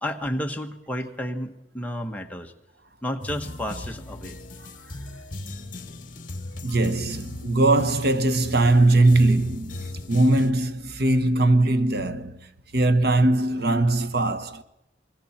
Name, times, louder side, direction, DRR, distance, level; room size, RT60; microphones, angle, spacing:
voice 1, 0.0-2.5 3.0-4.4, equal, 10° left, 1.4 m, -31 dB
sound 1, 3.2-10.5, left 2 dB, 50° left, 1.9 m, -38 dB
voice 2, 6.6-14.6, right 2 dB, 60° right, 1.2 m, -21 dB
28.5 x 21.5 x 4.4 m
head